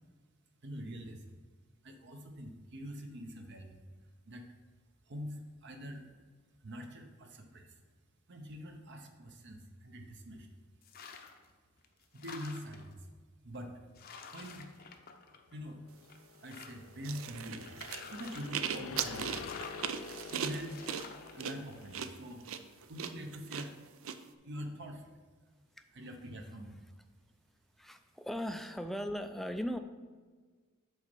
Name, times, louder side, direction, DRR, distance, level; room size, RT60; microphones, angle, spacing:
voice 1, 0.6-1.4 1.8-3.8 4.3-4.4 5.1-6.0 6.6-7.8 8.3-10.5 12.1-13.1 13.4-13.8 14.3-14.7 15.5-15.8 16.4-17.8 18.1-19.5 20.3-20.8 21.3-22.4 22.9-24.1 24.4-25.2 25.9-26.8, equal, 55° right, 4 dB, 0.8 m, -44 dB
sound 1, 10.8-11.5 11.8-12.9 13.5-13.6 14.0-15.7 16.0-17.0 17.6-18.6 19.2-19.9 20.7-21.3, left 6 dB, 45° left, 0.7 m, -49 dB
sound 2, 15.6-22.5, left 5 dB, 85° left, 0.4 m, -48 dB
sound 3, 17.0-24.2, right 8 dB, 75° right, 0.5 m, -39 dB
voice 2, 27.8-29.8, equal, ahead, 7 dB, 0.4 m, -38 dB
8.1 x 4.1 x 5.3 m, 1.5 s
head